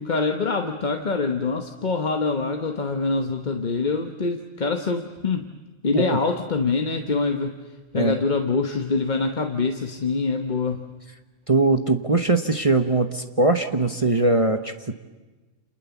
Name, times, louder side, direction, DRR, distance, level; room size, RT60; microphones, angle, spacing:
voice 1, 0.0-5.5 5.8-7.6 7.9-10.9, left 4 dB, 35° left, 5 dB, 1.1 m, -25 dB
voice 2, 11.5-14.9, right 2 dB, 25° right, 7 dB, 0.9 m, -21 dB
29.5 x 27.5 x 7.1 m, 1.2 s
omnidirectional pair, 1.4 m